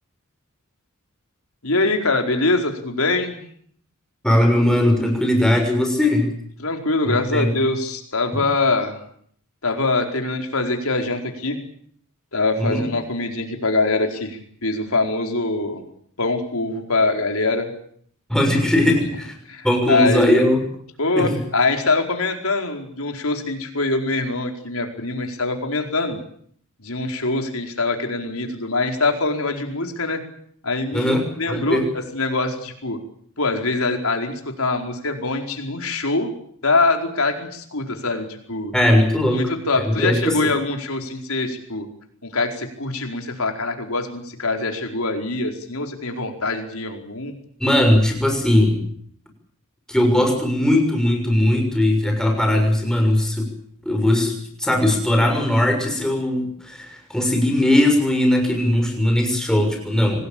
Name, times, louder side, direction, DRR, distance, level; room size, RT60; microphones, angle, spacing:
voice 1, 1.6-3.4 6.6-9.0 9.6-11.6 12.3-15.8 16.2-17.7 19.0-19.1 19.5-20.5 21.0-26.2 26.8-30.2 30.6-33.0 33.4-36.3 36.6-38.7 39.3-41.8 42.2-47.3, left 3 dB, 70° left, 4 dB, 4.7 m, -23 dB
voice 2, 4.2-6.3 7.0-7.5 8.3-8.4 12.6-12.8 18.3-19.3 19.6-20.6 21.2-21.4 30.9-31.8 38.7-39.4 39.8-40.5 47.6-48.8 49.9-53.5 53.8-54.3 54.6-60.2, left 1 dB, 5° left, 3 dB, 6.4 m, -19 dB
25.5 x 19.0 x 8.8 m, 0.64 s
head